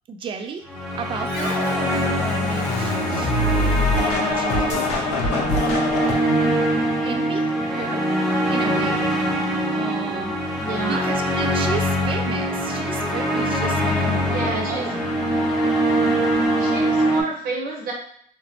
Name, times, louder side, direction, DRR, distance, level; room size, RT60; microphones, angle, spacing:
voice 1, 0.1-0.7 0.9-3.7 4.2-6.3 7.0-9.1 9.4-10.3 10.8-15.1, right 5 dB, 30° right, 6 dB, 0.3 m, -34 dB
sound 1, 0.7-17.2, equal, ahead, 0.7 m, -23 dB
Scratching (performance technique), 1.3-6.1, left 2 dB, 80° left, 0.7 m, -24 dB
voice 2, 10.6-11.0 14.3-14.9 16.6-17.9, right 3 dB, 60° right, 0 dB, 0.9 m, -29 dB
2.9 x 2.0 x 2.8 m, 0.65 s
cardioid pair, 110°, 17 cm